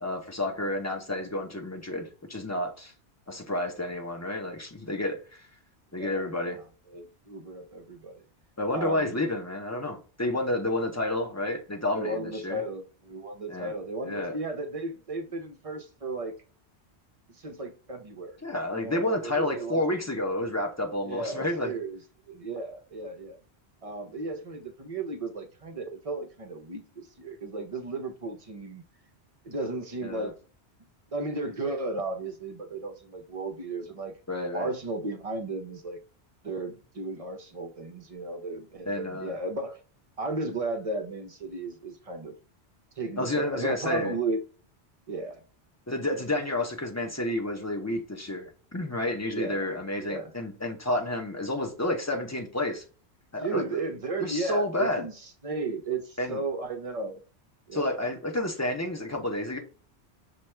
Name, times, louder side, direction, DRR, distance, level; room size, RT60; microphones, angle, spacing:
voice 1, 0.0-2.9 3.3-5.2 5.9-6.6 8.6-12.6 13.5-13.7 14.0-14.3 18.4-21.7 30.0-30.3 34.3-34.7 38.9-39.3 43.2-44.1 45.9-52.8 53.3-53.6 54.2-55.1 56.2-56.4 57.7-59.6, left 1 dB, 20° left, 0.5 m, -30 dB
voice 2, 5.9-8.2 8.7-9.2 11.9-16.3 17.3-18.4 18.7-19.8 21.0-22.0 22.3-23.4 23.8-28.8 29.4-30.3 31.1-34.1 34.5-36.0 36.4-39.8 40.2-42.3 43.0-44.4 45.1-45.4 49.3-49.7 50.0-50.3 53.4-57.2 57.7-57.9, right 3 dB, 40° right, 0.6 m, -34 dB
5.8 x 2.3 x 3.2 m
omnidirectional pair, 1.1 m